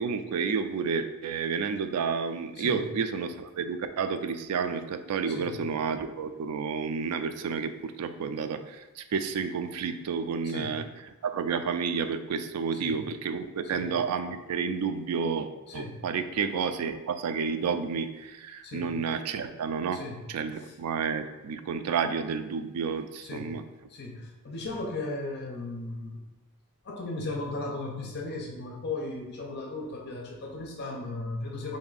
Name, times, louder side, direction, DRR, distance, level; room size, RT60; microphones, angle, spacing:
voice 1, 0.0-10.8 11.2-20.0 20.3-23.6, right 5 dB, 85° right, 9 dB, 0.3 m, -30 dB
voice 2, 5.3-5.6 10.4-10.9 12.8-13.0 13.7-13.9 15.7-16.0 18.6-19.0 19.9-20.2 23.2-23.6 23.9-26.2 26.8-31.8, left 2 dB, 50° left, 0 dB, 0.6 m, -36 dB
3.3 x 2.6 x 3.9 m, 1.1 s
head